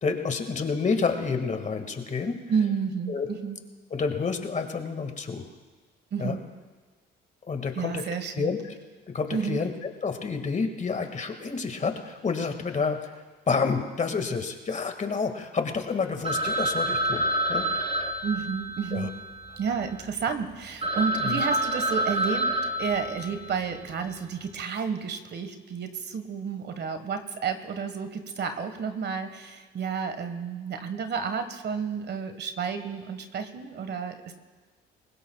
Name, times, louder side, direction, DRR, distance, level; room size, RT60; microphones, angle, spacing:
voice 1, 0.0-2.4 3.1-3.3 3.9-5.4 6.2-6.4 7.5-8.0 8.4-8.6 9.1-13.1 13.5-17.7 18.9-19.1 21.1-21.4, left 5 dB, 35° left, 6 dB, 2.0 m, -29 dB
voice 2, 2.5-3.6 6.1-6.4 7.7-8.5 9.3-9.6 18.2-19.1 19.6-34.3, right 6 dB, 55° right, 8 dB, 1.5 m, -31 dB
Telephone, 16.2-20.0 20.5-20.6 20.8-23.7, right 1 dB, 30° right, 3.1 m, -28 dB
23.0 x 19.5 x 2.4 m, 1.3 s
supercardioid pair, 70°, 21 cm